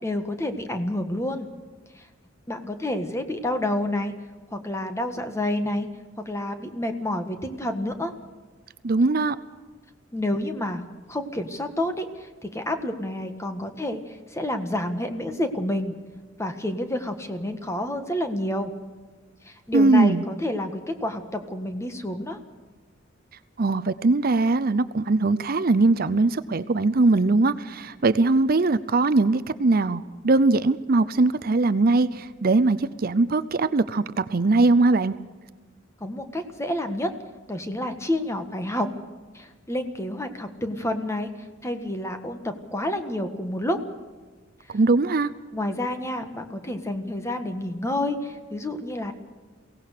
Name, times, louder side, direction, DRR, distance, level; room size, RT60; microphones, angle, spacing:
voice 1, 0.0-1.5 2.5-4.1 4.5-5.9 6.2-8.1 10.1-14.0 14.3-15.9 16.4-18.7 19.5-22.4 36.0-37.1 37.5-38.9 39.3-41.3 41.6-43.8 45.5-49.1, left 1 dB, 15° left, 7 dB, 1.6 m, -29 dB
voice 2, 8.8-9.4 19.7-20.2 23.6-35.1 44.7-45.3, right 3 dB, 50° right, 14 dB, 0.6 m, -21 dB
23.0 x 17.5 x 6.6 m, 1.4 s
head